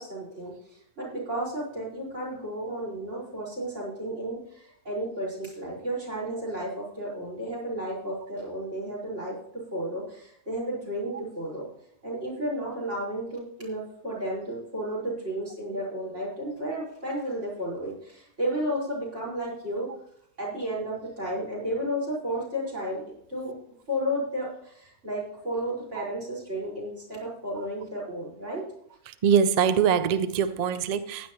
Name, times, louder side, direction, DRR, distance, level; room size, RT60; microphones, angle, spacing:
voice 1, 0.0-11.7 12.0-19.9 20.4-23.5 23.9-28.6, right 1 dB, 50° right, 5.4 m, -33 dB
voice 2, 29.2-31.3, right 7 dB, 80° right, 0.3 m, -23 dB
15.5 x 10.0 x 3.0 m
omnidirectional pair, 1.6 m